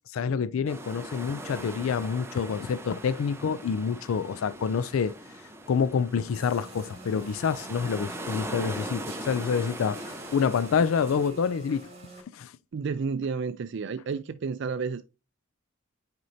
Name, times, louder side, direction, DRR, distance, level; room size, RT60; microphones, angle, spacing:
voice 1, 0.0-5.1 5.7-11.9 12.3-12.5, left 6 dB, 85° left, 0.4 m, -27 dB
sound 1, 0.7-11.3, right 1 dB, 10° right, 0.8 m, -40 dB
sound 2, 6.3-12.2, right 2 dB, 30° right, 2.0 m, -47 dB
voice 2, 12.7-15.1, right 5 dB, 60° right, 0.4 m, -31 dB
9.5 x 4.4 x 2.7 m
head